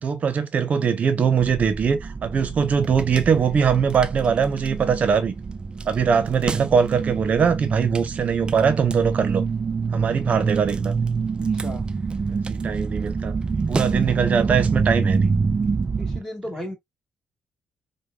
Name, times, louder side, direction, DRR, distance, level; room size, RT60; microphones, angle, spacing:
voice 1, 0.0-5.3 5.9-9.4 9.9-10.9 12.3-13.4 13.7-15.3, right 6 dB, 50° right, 0.7 m, -21 dB
sound 1, 1.4-16.2, right 5 dB, 30° right, 0.3 m, -26 dB
voice 2, 11.3-11.8 16.0-16.7, left 1 dB, 15° left, 1.6 m, -36 dB
5.0 x 2.2 x 2.2 m
cardioid pair, 90°, 3 cm